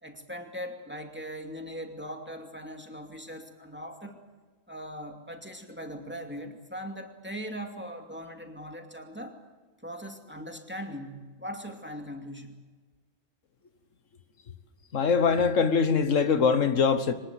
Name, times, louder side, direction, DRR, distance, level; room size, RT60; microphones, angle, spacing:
voice 1, 0.0-4.2 4.7-9.4 9.8-12.6, equal, 10° right, 2.4 m, -40 dB
voice 2, 14.9-17.1, left 5 dB, 80° left, 1.6 m, -23 dB
24.5 x 19.5 x 8.3 m
omnidirectional pair, 1.3 m